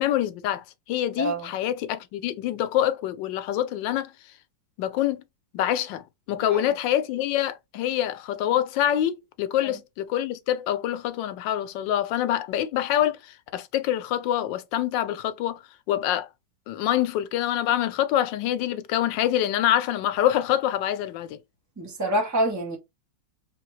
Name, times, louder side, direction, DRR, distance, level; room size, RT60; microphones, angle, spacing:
voice 1, 0.0-4.1 4.8-5.2 5.5-6.0 6.3-15.6 15.9-16.3 16.7-21.4, left 12 dB, 85° left, 1.3 m, -25 dB
voice 2, 1.2-1.5 6.5-6.6 9.6-9.7 21.8-22.8, right 1 dB, 10° right, 1.1 m, -26 dB
4.4 x 2.8 x 3.1 m
omnidirectional pair, 2.0 m